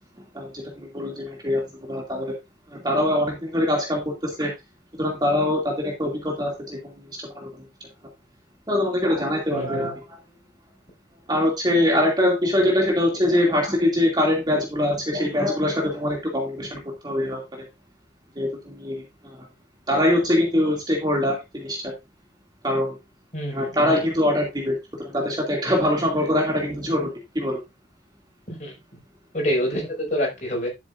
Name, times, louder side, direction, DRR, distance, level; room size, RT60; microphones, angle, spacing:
voice 1, 0.3-1.6 1.9-2.4 2.7-4.5 5.0-6.8 7.3-7.5 8.7-10.0 11.3-17.4 18.4-19.4 19.9-21.9 22.6-23.0 23.5-27.6, left 1 dB, 20° right, 2.5 m, -23 dB
voice 2, 9.5-10.0 23.3-24.0 28.5-28.7 29.3-30.7, equal, 40° left, 5.5 m, -27 dB
12.0 x 7.0 x 2.6 m
head